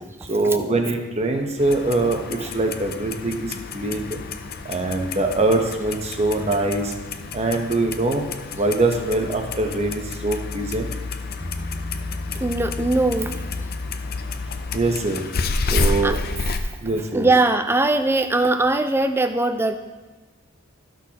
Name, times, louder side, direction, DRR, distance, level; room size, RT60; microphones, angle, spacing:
voice 1, 0.3-4.2 4.6-6.9 7.3-8.2 8.6-10.9 14.7-15.2 15.7-16.2 16.8-17.3, right 2 dB, 30° right, 3 dB, 0.8 m, -23 dB
Clock, 1.6-16.6, left 3 dB, 45° left, 0.5 m, -30 dB
Bass guitar, 11.4-14.8, equal, 75° right, 2.3 m, -37 dB
voice 2, 12.4-13.3 16.0-16.2 17.1-19.8, right 2 dB, 10° right, 8 dB, 0.3 m, -20 dB
13.5 x 6.2 x 2.9 m, 1.3 s
head